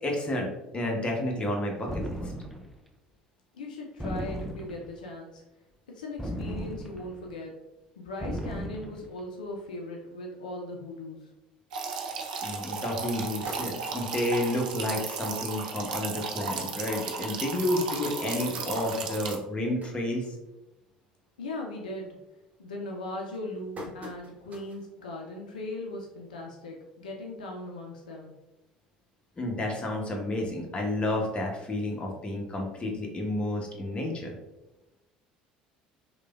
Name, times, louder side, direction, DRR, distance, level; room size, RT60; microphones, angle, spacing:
voice 1, 0.0-2.0 12.4-20.2 29.4-34.3, left 1 dB, 25° left, 0 dB, 0.7 m, -30 dB
sound 1, 1.9-2.8 4.0-5.0 6.2-7.2 8.2-9.1, equal, ahead, 0.4 m, -36 dB
voice 2, 3.5-5.4 5.9-7.5 8.0-11.3 21.4-22.2 22.6-28.3, left 1 dB, 80° left, 0 dB, 0.4 m, -39 dB
sound 2, 11.7-19.4, right 5 dB, 75° right, 0.3 m, -35 dB
sound 3, 13.4-14.3 14.8-14.9 15.2-15.3 15.6-15.8 16.5-16.6 17.1-17.2 18.0-20.8 21.2-21.5 21.9-22.3 22.9-24.9 25.3-25.4 26.6-26.7, equal, 35° right, 0.7 m, -45 dB
3.1 x 2.1 x 2.2 m, 0.98 s
figure-of-eight pair, 65°, 4 cm